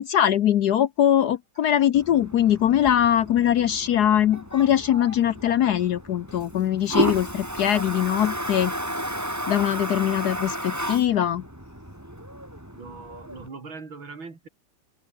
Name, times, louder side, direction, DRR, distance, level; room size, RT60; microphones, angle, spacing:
voice 1, 0.0-8.7 9.5-11.5, left 10 dB, 65° left, 1.1 m, -22 dB
Toilet flush, 1.9-13.5, equal, 10° right, 5.6 m, -33 dB
voice 2, 12.7-14.5, right 4 dB, 75° right, 4.6 m, -40 dB
omnidirectional pair, 2.2 m